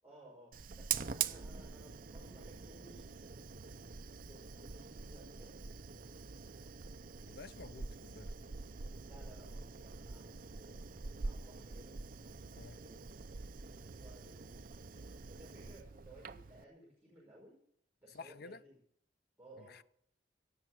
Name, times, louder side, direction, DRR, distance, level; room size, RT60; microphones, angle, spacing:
voice 1, 0.0-3.4 4.2-5.6 9.0-10.8 11.2-12.0 12.7-15.0 15.3-17.6 18.0-18.8 19.4-19.8, right 1 dB, 10° right, 5.5 m, -59 dB
Fire, 0.5-16.6, right 6 dB, 45° right, 0.5 m, -45 dB
voice 2, 7.3-8.3 12.6-12.8 18.1-18.6 19.6-19.8, left 4 dB, 55° left, 0.5 m, -51 dB
17.0 x 7.5 x 7.6 m
head